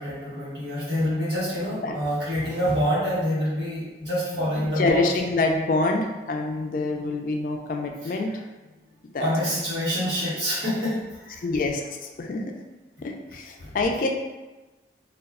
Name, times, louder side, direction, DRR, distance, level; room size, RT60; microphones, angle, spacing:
voice 1, 0.0-5.1 8.0-8.1 9.1-11.4 13.6-13.7, equal, 70° right, -10 dB, 1.1 m, -26 dB
voice 2, 4.3-8.4 9.1-9.3 11.4-12.4 13.0-14.1, left 3 dB, 50° left, 3 dB, 0.3 m, -26 dB
2.3 x 2.2 x 3.5 m, 1.1 s
head